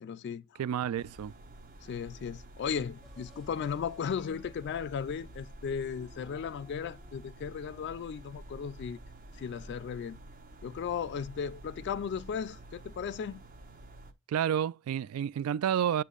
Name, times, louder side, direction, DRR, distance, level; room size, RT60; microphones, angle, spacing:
voice 1, 0.0-0.4 1.8-9.0 9.4-10.2 10.6-13.4, left 7 dB, 55° left, 0.3 m, -36 dB
voice 2, 0.6-1.3 14.3-16.0, right 9 dB, 90° right, 0.3 m, -30 dB
sound 1, 1.0-14.1, right 1 dB, 40° right, 0.8 m, -50 dB
sound 2, 3.0-8.8, left 3 dB, ahead, 0.8 m, -61 dB
8.2 x 5.5 x 2.4 m
head